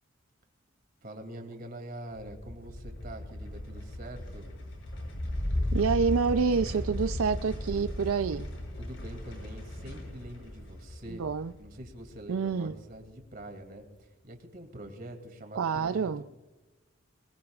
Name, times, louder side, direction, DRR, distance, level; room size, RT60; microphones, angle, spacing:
voice 1, 1.0-4.5 8.8-11.2 11.6-16.3, right 1 dB, 45° right, 2.6 m, -45 dB
sound 1, 2.1-12.7, left 1 dB, 70° left, 6.5 m, -36 dB
voice 2, 5.7-8.5 11.1-11.5 12.3-12.8 15.5-16.2, right 5 dB, 85° right, 0.4 m, -27 dB
21.5 x 20.5 x 2.4 m
head